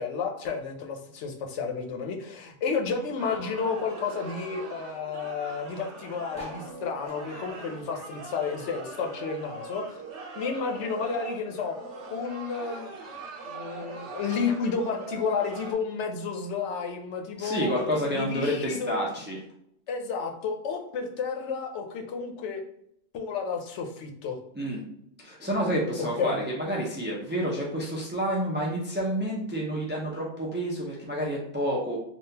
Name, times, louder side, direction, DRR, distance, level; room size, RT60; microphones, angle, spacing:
voice 1, 0.0-10.0 10.4-11.7 12.1-19.0 19.9-22.6 23.1-24.4 26.0-26.4, left 5 dB, 80° left, 3 dB, 0.9 m, -31 dB
sound 1, 3.2-15.7, right 4 dB, 90° right, 0.9 m, -41 dB
sound 2, 6.3-9.1 9.4-10.9 11.4-11.5 11.7-11.8 12.0-12.4 13.1-13.2, left 2 dB, 5° left, 1.2 m, -47 dB
voice 2, 17.4-19.4 24.5-24.8 25.2-32.0, equal, 20° right, -3 dB, 0.3 m, -29 dB
3.6 x 2.3 x 2.7 m, 0.74 s
omnidirectional pair, 1.2 m